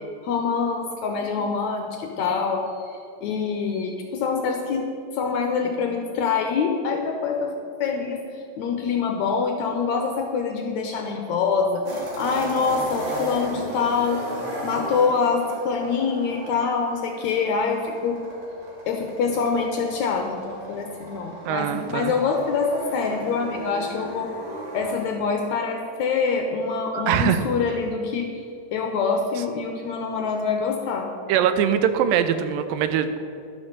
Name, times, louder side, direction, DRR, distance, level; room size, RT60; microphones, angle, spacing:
voice 1, 0.2-4.9 5.1-7.5 7.8-14.3 14.6-18.3 18.9-24.4 24.7-28.4 28.7-31.1, left 5 dB, 75° left, 3 dB, 1.7 m, -25 dB
sound 1, 11.8-25.1, right 1 dB, 55° right, 3.5 m, -35 dB
voice 2, 21.5-22.1 26.9-27.4 31.3-33.1, right 9 dB, 85° right, 10 dB, 2.3 m, -22 dB
11.5 x 6.2 x 6.5 m, 2.6 s
omnidirectional pair, 4.0 m